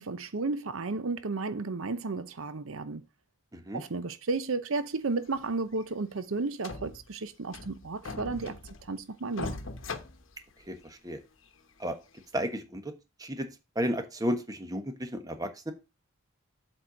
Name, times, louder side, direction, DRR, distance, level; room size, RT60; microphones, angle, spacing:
voice 1, 0.0-3.0 3.7-9.6, right 3 dB, 80° right, 0.7 m, -33 dB
sound 1, 5.2-5.4 5.8-5.9 6.2-6.3 6.6-7.1 7.5-9.0 9.3-10.9 11.4-11.5 12.2-12.3, left 3 dB, 70° left, 1.0 m, -40 dB
voice 2, 10.7-11.2 11.8-11.9 12.3-12.9 13.2-13.5 13.7-15.7, equal, 15° right, 1.2 m, -33 dB
7.8 x 4.4 x 6.2 m
head